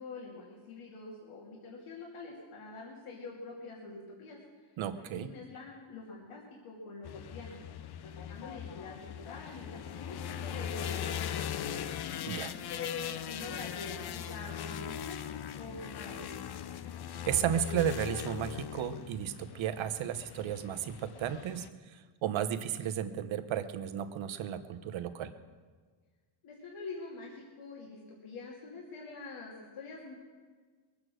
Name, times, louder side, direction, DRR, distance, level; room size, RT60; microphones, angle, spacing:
voice 1, 0.0-4.7 4.9-7.6 8.0-11.8 12.7-15.2 15.5-16.3 26.4-30.2, left 3 dB, 90° left, -3 dB, 2.8 m, -45 dB
voice 2, 4.8-5.3 12.3-12.5 17.3-25.3, right 10 dB, 70° right, 10 dB, 1.1 m, -34 dB
sound 1, 7.0-21.7, left 9 dB, 50° left, 0.7 m, -40 dB
22.0 x 8.4 x 6.3 m, 1.5 s
wide cardioid pair, 170°, 49 cm